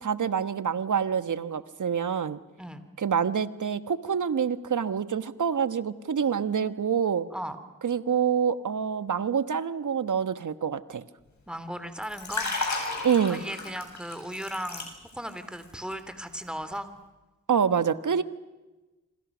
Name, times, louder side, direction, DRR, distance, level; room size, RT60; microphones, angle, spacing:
voice 1, 0.0-2.4 3.0-7.3 7.8-11.0 13.0-13.4 17.5-18.2, right 7 dB, 60° right, 12 dB, 1.4 m, -26 dB
voice 2, 11.5-12.5 13.3-14.9 15.1-16.9, equal, 5° right, 10 dB, 3.1 m, -36 dB
Liquid, 12.0-15.3 15.6-15.9, left 3 dB, 55° left, 7.6 m, -33 dB
26.5 x 26.5 x 6.3 m, 1.1 s
cardioid pair, 50°, 34 cm